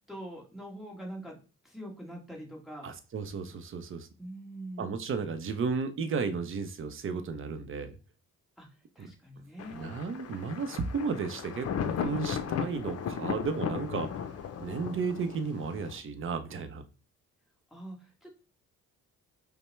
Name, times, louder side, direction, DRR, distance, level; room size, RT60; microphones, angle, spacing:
voice 1, 0.1-1.3 1.6-2.9 3.5-3.6 4.2-4.9 8.6-8.7 8.9-9.9 17.7-18.3, right 1 dB, ahead, -2 dB, 1.3 m, -43 dB
voice 2, 2.8-4.1 4.8-8.0 9.0-9.1 9.7-11.7 12.0-14.2 14.6-16.8, right 5 dB, 45° right, 10 dB, 0.6 m, -33 dB
Thunder, 9.6-16.0, left 7 dB, 55° left, 0.6 m, -36 dB
5.3 x 2.1 x 3.2 m, 0.35 s
cardioid pair, 90°, 30 cm